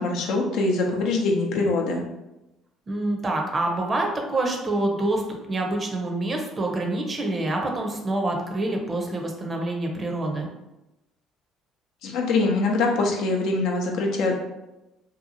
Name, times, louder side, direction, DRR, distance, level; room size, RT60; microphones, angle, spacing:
voice 1, 0.0-2.0 12.0-14.3, left 3 dB, 70° left, 1 dB, 0.5 m, -23 dB
voice 2, 2.9-5.2 5.5-10.5, right 2 dB, 35° right, 2 dB, 0.6 m, -26 dB
2.8 x 2.3 x 2.6 m, 0.96 s
hypercardioid pair, 65°, 0 cm